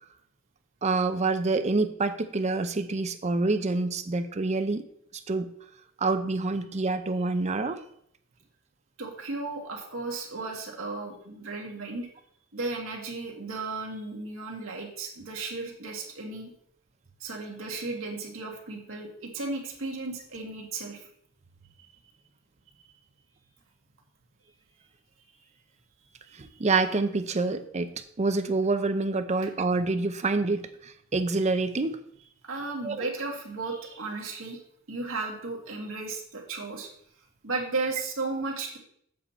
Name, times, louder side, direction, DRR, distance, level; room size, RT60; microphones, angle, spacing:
voice 1, 0.8-4.8 5.3-5.5 6.0-7.8 26.4-27.9 28.2-32.0 32.8-33.1, right 3 dB, 35° right, 10 dB, 0.6 m, -27 dB
voice 2, 9.0-12.1 12.5-16.5 17.2-21.0 21.8-21.9 26.3-26.7 32.4-34.6 34.9-36.9 37.4-38.8, right 3 dB, 85° right, 0 dB, 1.7 m, -35 dB
7.5 x 6.9 x 4.3 m, 0.68 s
head